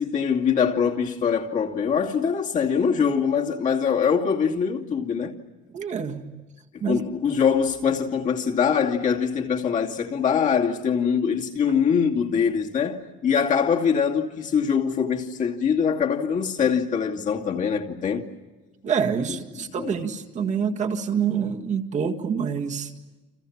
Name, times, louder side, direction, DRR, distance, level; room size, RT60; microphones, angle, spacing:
voice 1, 0.0-5.3 6.9-18.3 19.3-19.4 19.8-20.0, left 6 dB, 40° left, 2.6 m, -23 dB
voice 2, 5.7-6.3 6.8-7.0 18.8-22.9, right 7 dB, 35° right, 1.9 m, -26 dB
29.5 x 27.5 x 7.3 m
cardioid pair, 170°, 20 cm